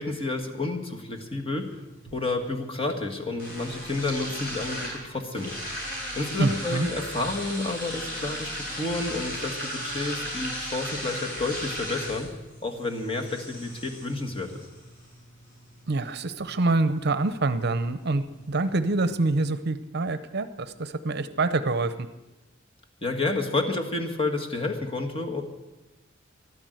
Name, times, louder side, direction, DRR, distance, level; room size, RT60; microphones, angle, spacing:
voice 1, 0.0-1.8 2.1-5.6 6.1-12.3 12.6-14.6 23.0-25.4, left 2 dB, 30° left, 3 dB, 1.7 m, -30 dB
sound 1, 1.6-19.6, equal, 50° left, 6.4 m, -38 dB
voice 2, 6.4-6.9 15.9-22.1, right 3 dB, 55° right, 12 dB, 0.7 m, -26 dB
13.5 x 12.0 x 7.9 m, 1.1 s
head